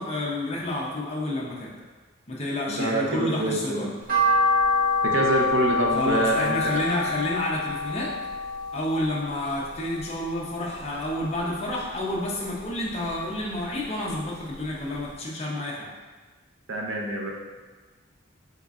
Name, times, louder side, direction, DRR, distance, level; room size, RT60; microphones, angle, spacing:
voice 1, 0.0-1.7 2.3-3.9 5.9-8.1 8.7-15.9, left 1 dB, 30° left, -4 dB, 0.7 m, -29 dB
voice 2, 2.7-3.9 5.0-6.6 16.7-17.3, right 2 dB, 65° right, -1 dB, 0.6 m, -25 dB
sound 1, 4.1-10.4 10.8-11.9 12.3-13.7 14.1-14.2 14.6-14.7 15.0-15.1, left 2 dB, 45° right, 1.0 m, -26 dB
4.0 x 3.8 x 2.4 m, 1.3 s
head